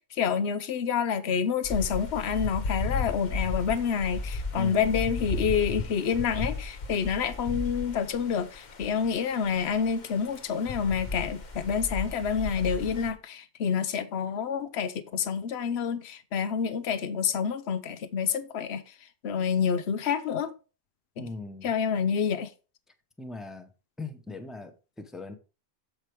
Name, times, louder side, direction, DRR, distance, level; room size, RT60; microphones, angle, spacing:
voice 1, 0.1-18.8 19.2-20.5 21.2-21.3 21.6-22.5, left 7 dB, 85° left, 1.0 m, -28 dB
sound 1, 1.6-13.1, left 3 dB, 50° left, 1.0 m, -35 dB
voice 2, 4.5-5.0 21.2-21.7 23.2-23.7 24.0-25.3, left 3 dB, ahead, 0.7 m, -39 dB
7.4 x 5.0 x 4.6 m
omnidirectional pair, 1.1 m